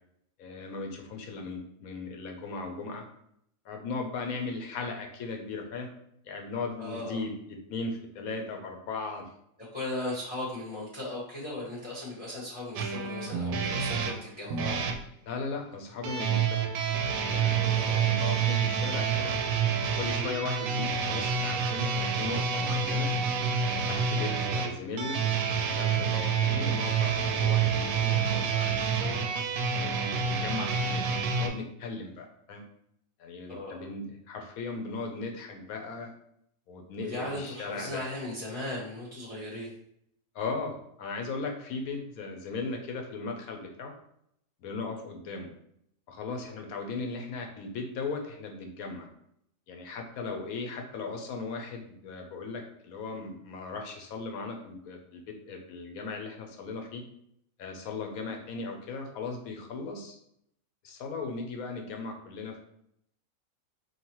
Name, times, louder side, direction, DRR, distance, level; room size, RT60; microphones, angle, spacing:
voice 1, 0.4-3.0 3.6-5.9 6.2-7.4 7.7-9.3 15.3-16.6 17.2-19.4 19.9-23.1 23.9-25.2 25.7-29.2 29.8-31.1 31.4-32.6 33.2-36.1 36.7-38.0 40.3-43.9 44.6-45.5 46.1-49.1 49.7-57.0 57.6-60.2 60.8-62.6, left 4 dB, 85° left, 3 dB, 1.2 m, -37 dB
voice 2, 6.8-7.2 9.7-14.8 17.8-18.1 33.5-33.8 37.0-39.7, left 1 dB, 30° left, -5 dB, 0.9 m, -37 dB
sound 1, 12.8-15.0 16.0-31.5, right 6 dB, 85° right, 1.0 m, -28 dB
4.8 x 2.9 x 3.0 m, 0.73 s
omnidirectional pair, 1.5 m